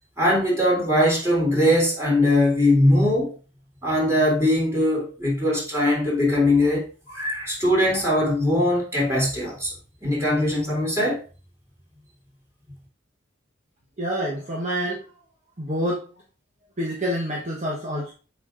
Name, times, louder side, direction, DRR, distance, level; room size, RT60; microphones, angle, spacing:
voice 1, 0.2-3.3 3.8-9.7 10.0-11.2, left 1 dB, 15° right, 3.5 m, -21 dB
voice 2, 14.0-15.0 15.6-16.1 16.8-18.1, equal, 40° right, 1.1 m, -27 dB
7.8 x 5.2 x 2.6 m
head